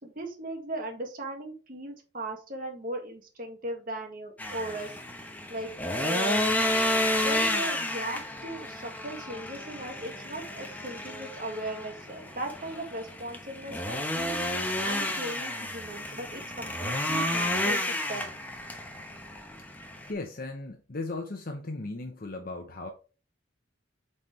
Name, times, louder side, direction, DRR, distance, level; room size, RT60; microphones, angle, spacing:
voice 1, 0.0-5.0 5.5-5.7 6.0-6.4 7.2-14.4 14.8-18.3, right 1 dB, 45° right, 1.6 m, -38 dB
sound 1, 4.4-20.1, left 1 dB, 10° left, 0.9 m, -31 dB
voice 2, 20.1-22.9, left 2 dB, 50° left, 0.8 m, -36 dB
8.1 x 4.2 x 3.2 m
head